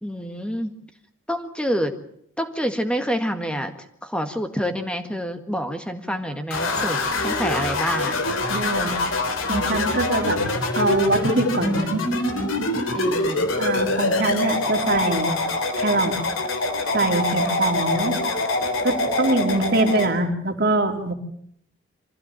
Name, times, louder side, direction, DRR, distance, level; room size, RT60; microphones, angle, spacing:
voice 1, 0.0-0.7 1.3-2.0 2.4-3.7 4.0-7.0 7.2-8.2 12.9-13.5, equal, 5° left, 8 dB, 1.7 m, -27 dB
sound 1, 6.5-20.1, left 2 dB, 80° left, 3.6 m, -24 dB
voice 2, 8.5-9.0 9.4-10.4 10.7-11.9 13.6-15.4 15.8-16.2 16.9-18.2 18.8-21.1, right 2 dB, 50° right, 4 dB, 3.0 m, -23 dB
25.5 x 15.5 x 8.9 m, 0.70 s
head